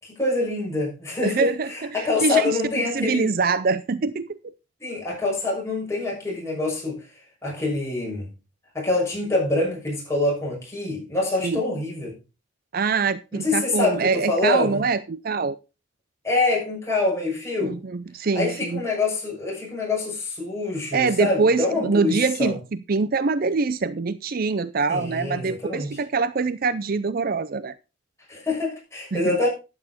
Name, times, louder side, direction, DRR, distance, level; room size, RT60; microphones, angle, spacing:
voice 1, 0.0-3.3 4.8-6.9 7.4-8.3 8.7-12.1 13.3-14.8 16.2-17.8 18.3-22.6 24.9-26.0 28.3-29.5, left 3 dB, 15° left, 6.5 m, -25 dB
voice 2, 1.2-2.6 2.9-4.4 11.4-11.6 12.7-15.6 17.6-18.8 20.9-27.7 29.1-29.4, right 4 dB, 50° right, 0.5 m, -24 dB
11.5 x 8.8 x 4.3 m
head